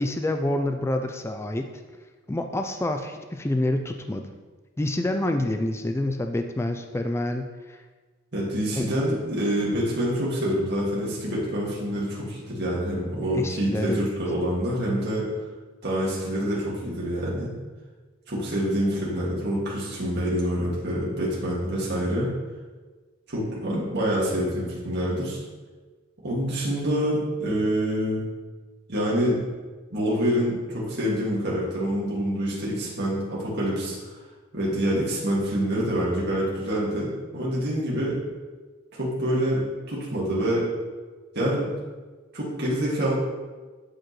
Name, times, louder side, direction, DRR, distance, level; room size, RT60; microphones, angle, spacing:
voice 1, 0.0-1.7 2.3-4.2 4.8-7.8 8.8-8.9 13.3-14.1, left 1 dB, 15° left, 5 dB, 0.3 m, -27 dB
voice 2, 8.3-15.3 15.8-17.5 18.3-22.3 23.3-25.4 26.2-28.2 28.9-29.4 29.9-34.1 34.5-38.1 39.0-39.6 39.9-40.6 41.3-41.7 42.3-43.1, equal, 55° right, -6 dB, 2.0 m, -26 dB
11.0 x 5.1 x 3.1 m, 1.3 s
head